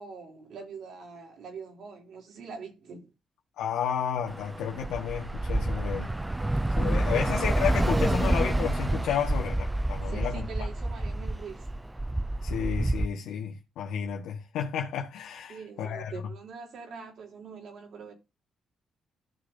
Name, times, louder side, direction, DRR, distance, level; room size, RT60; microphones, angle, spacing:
voice 1, 0.0-3.1 7.1-7.2 10.1-11.7 15.5-18.1, right 5 dB, 65° right, 3.5 m, -43 dB
voice 2, 3.6-6.1 6.8-10.4 12.4-16.1, left 8 dB, 85° left, 1.6 m, -32 dB
Bus / Traffic noise roadway noise, 4.3-13.1, right 1 dB, 10° right, 0.4 m, -28 dB
14.0 x 6.7 x 2.8 m
cardioid pair, 90°, 0 cm